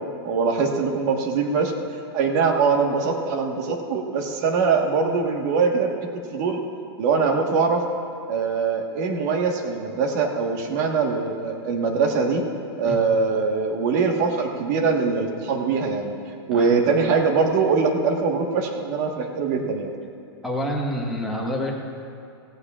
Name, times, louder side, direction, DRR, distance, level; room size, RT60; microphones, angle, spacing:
voice 1, 0.0-1.7 2.1-6.6 7.0-7.8 8.3-12.4 12.8-16.1 16.5-19.9, right 5 dB, 45° right, 2 dB, 1.5 m, -22 dB
voice 2, 20.4-21.7, equal, ahead, -2 dB, 1.4 m, -27 dB
17.0 x 16.0 x 2.5 m, 2.4 s
supercardioid pair, 160°, 14 cm